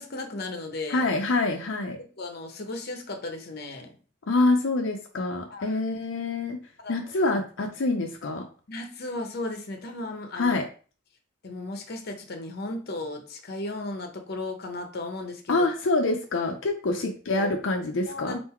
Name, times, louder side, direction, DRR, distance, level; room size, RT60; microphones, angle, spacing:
voice 1, 0.0-1.0 2.0-4.0 5.5-5.8 6.8-6.9 8.7-10.6 11.4-15.7 17.3-17.5 18.1-18.4, left 2 dB, 55° left, 4 dB, 0.8 m, -35 dB
voice 2, 0.9-2.0 4.3-6.6 6.9-8.4 10.4-10.6 15.5-18.4, left 2 dB, 85° left, 2 dB, 0.6 m, -26 dB
3.7 x 2.6 x 4.3 m, 0.39 s
head